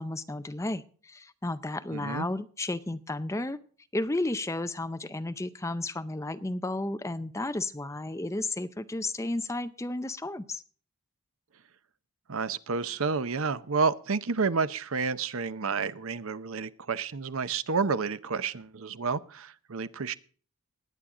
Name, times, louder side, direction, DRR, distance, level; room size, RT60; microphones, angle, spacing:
voice 1, 0.0-3.6 3.9-10.6, left 2 dB, 15° left, 11 dB, 0.5 m, -33 dB
voice 2, 1.9-2.3 12.3-20.1, right 5 dB, 65° right, 15 dB, 0.7 m, -30 dB
20.0 x 8.8 x 3.7 m, 0.43 s
head